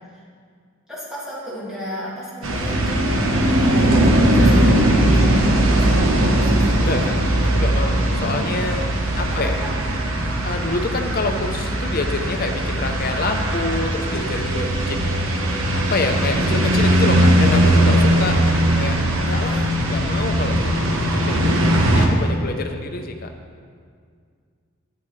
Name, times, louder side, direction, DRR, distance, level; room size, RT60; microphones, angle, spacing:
voice 1, 0.9-6.7 9.1-9.5 19.4-19.7 20.9-21.1, equal, 5° right, -9 dB, 2.0 m, -34 dB
sound 1, 2.4-22.1, right 1 dB, 70° right, 1.2 m, -19 dB
voice 2, 6.8-7.2 7.5-8.9 9.2-9.6 10.4-15.1 15.7-19.6 19.9-23.3, left 3 dB, 45° left, 5 dB, 0.7 m, -27 dB
12.0 x 9.0 x 3.2 m, 2.1 s
head